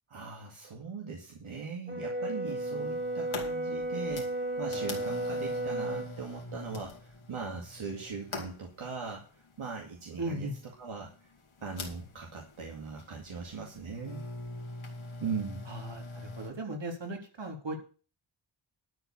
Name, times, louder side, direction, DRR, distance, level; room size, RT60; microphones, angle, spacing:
voice 1, 0.1-10.5 10.8-11.3 11.6-14.2 15.2-15.7, right 5 dB, 80° right, 1 dB, 2.2 m, -40 dB
Brass instrument, 1.9-6.1, right 1 dB, 20° right, 2.9 m, -33 dB
sound 1, 2.5-16.5, left 3 dB, 80° left, 2.8 m, -44 dB
voice 2, 10.2-10.5 15.7-17.8, right 1 dB, 60° right, 2 dB, 3.8 m, -37 dB
12.0 x 4.9 x 8.5 m, 0.37 s
wide cardioid pair, 65°, 48 cm